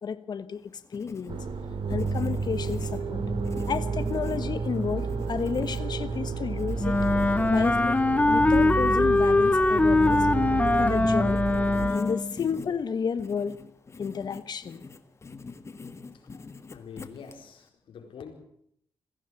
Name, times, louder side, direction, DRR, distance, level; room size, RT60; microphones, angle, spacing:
voice 1, 0.0-1.4 1.9-3.2 3.7-7.0 7.5-8.0 8.3-10.3 10.8-11.4 11.9-13.6 14.0-14.8, left 6 dB, 55° left, 1.2 m, -31 dB
Writing, 0.5-17.7, left 4 dB, 30° left, 1.7 m, -45 dB
sound 1, 1.3-11.9, right 4 dB, 70° right, 2.8 m, -30 dB
Wind instrument woodwind instrument, 6.8-12.3, left 2 dB, 15° left, 0.9 m, -22 dB
voice 2, 16.7-18.3, left 6 dB, 80° left, 4.7 m, -45 dB
21.5 x 16.0 x 7.8 m
wide cardioid pair, 115°, 9 cm